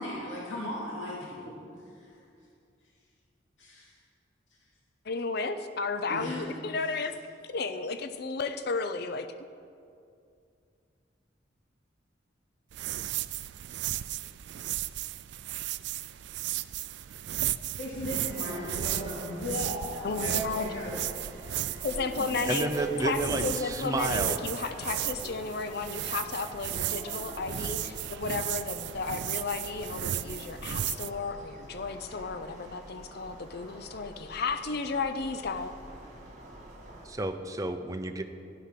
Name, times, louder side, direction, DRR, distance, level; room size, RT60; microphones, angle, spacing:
voice 1, 0.0-1.4 3.6-3.9 6.1-6.4 17.8-21.3, left 1 dB, 80° left, -5 dB, 2.6 m, -36 dB
voice 2, 5.1-7.1 7.5-9.3 20.0-20.7 21.8-22.7 23.0-35.7, left 4 dB, 55° left, 9 dB, 0.6 m, -33 dB
sound 1, 12.7-31.1, right 13 dB, 65° right, 0.3 m, -35 dB
sound 2, 18.2-37.1, right 1 dB, 40° right, 2.1 m, -45 dB
voice 3, 22.5-24.4 37.0-38.2, right 2 dB, 20° right, 6 dB, 0.7 m, -31 dB
13.5 x 10.5 x 5.8 m, 2.4 s
head